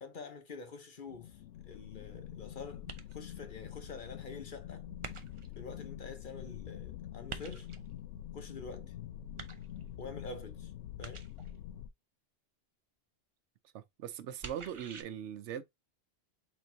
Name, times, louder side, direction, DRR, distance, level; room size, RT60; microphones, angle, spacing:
voice 1, 0.0-4.9 5.6-7.7 8.3-8.9 10.0-10.7 11.0-11.2, left 4 dB, 50° left, 1.0 m, -47 dB
sound 1, 1.1-11.9, left 11 dB, 90° left, 0.9 m, -46 dB
sound 2, 2.9-3.4 5.0-5.6 7.3-7.9 9.4-10.0 11.0-11.6 14.4-15.0, right 5 dB, 40° right, 0.5 m, -46 dB
voice 2, 13.7-15.6, right 9 dB, 85° right, 0.9 m, -40 dB
4.4 x 3.9 x 2.7 m
omnidirectional pair, 1.2 m